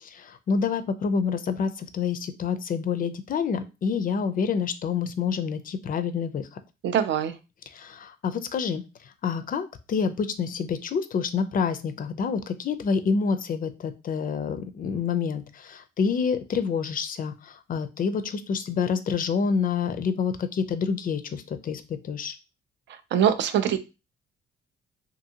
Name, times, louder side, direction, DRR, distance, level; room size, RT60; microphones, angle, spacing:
voice 1, 0.0-6.5 7.7-8.8 9.2-22.4, left 6 dB, 45° left, 9 dB, 0.4 m, -28 dB
voice 2, 6.8-7.3 23.1-23.8, right 9 dB, 65° right, 10 dB, 0.4 m, -22 dB
2.6 x 2.6 x 2.7 m, 0.28 s
cardioid pair, 90°, 20 cm